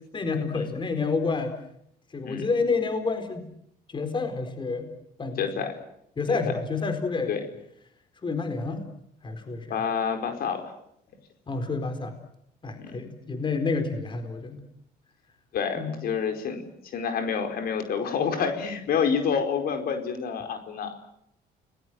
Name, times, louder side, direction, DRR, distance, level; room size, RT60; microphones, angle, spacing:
voice 1, 0.1-1.5 2.1-3.5 3.9-4.9 5.2-5.5 6.2-7.3 8.2-8.9 9.2-9.8 11.5-12.2 12.6-14.6 15.8-16.0, left 4 dB, 30° left, 7 dB, 4.3 m, -29 dB
voice 2, 5.4-5.7 6.3-6.4 7.3-7.4 9.7-10.7 12.8-13.0 15.5-16.6 16.9-21.0, left 6 dB, 65° left, 6 dB, 4.8 m, -28 dB
30.0 x 20.5 x 7.8 m, 0.74 s
cardioid pair, 110°, 17 cm